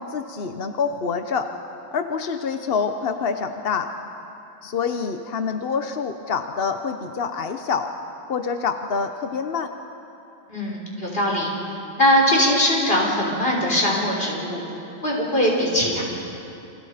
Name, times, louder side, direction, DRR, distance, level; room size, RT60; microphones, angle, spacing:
voice 1, 0.0-1.5 1.9-3.9 4.6-7.9 8.3-9.7, left 5 dB, 50° left, 6 dB, 0.7 m, -26 dB
voice 2, 10.5-11.5 12.0-14.6 15.0-16.0, equal, 25° left, -3 dB, 5.9 m, -21 dB
29.5 x 27.5 x 5.1 m, 2.8 s
omnidirectional pair, 2.2 m